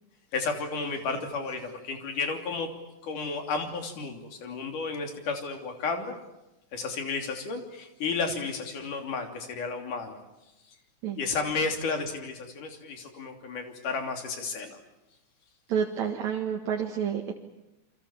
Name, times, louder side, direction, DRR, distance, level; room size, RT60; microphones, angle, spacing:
voice 1, 0.3-2.7 3.0-6.2 6.7-10.2 11.2-14.8, left 4 dB, 85° left, 4 dB, 4.6 m, -32 dB
voice 2, 15.7-17.3, right 8 dB, 65° right, 1 dB, 2.9 m, -29 dB
29.0 x 25.0 x 7.3 m, 0.95 s
omnidirectional pair, 3.5 m